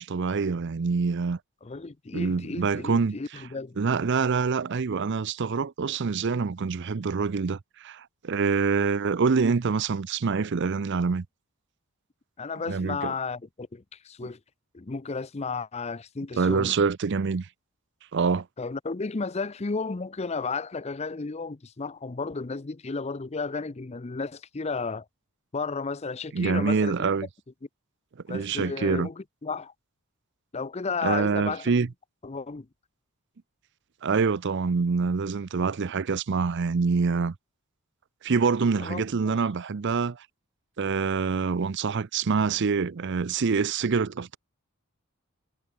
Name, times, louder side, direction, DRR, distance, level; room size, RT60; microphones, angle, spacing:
voice 1, 0.0-1.4 2.1-3.2 3.8-11.2 12.7-13.1 16.4-17.5 18.1-18.5 26.3-27.3 28.3-29.1 31.0-31.9 34.0-37.3 38.2-40.2 40.8-44.4, right 5 dB, 55° right, 0.5 m, -26 dB
voice 2, 1.6-3.8 12.4-14.4 14.7-16.7 18.6-25.1 25.5-27.1 28.3-29.7 30.5-31.7 32.2-32.7 38.8-39.4, left 4 dB, 30° left, 0.5 m, -33 dB
head